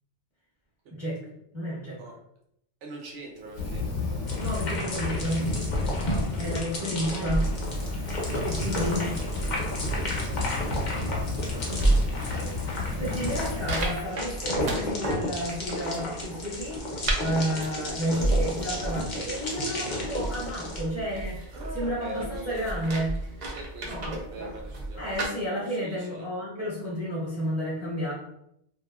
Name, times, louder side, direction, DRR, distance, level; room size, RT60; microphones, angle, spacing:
voice 1, 0.9-1.2 1.5-2.0 4.4-5.5 6.4-7.5 8.5-9.2 12.9-16.8 17.2-23.5 23.8-24.2 25.0-28.1, equal, 15° right, -7 dB, 0.8 m, -31 dB
voice 2, 2.8-3.9 6.0-6.3 8.7-8.9 9.7-12.6 18.0-18.3 21.5-22.7 23.4-25.4 25.7-26.2, right 2 dB, 85° right, -1 dB, 1.0 m, -43 dB
Fire, 3.5-6.6 7.1-14.1, left 3 dB, 80° left, 1.1 m, -33 dB
sound 1, 4.3-20.8, left 1 dB, 45° left, 0.7 m, -33 dB
sound 2, 5.4-25.3, right 1 dB, 50° right, 0.5 m, -33 dB
2.8 x 2.7 x 2.3 m, 0.75 s
omnidirectional pair, 1.2 m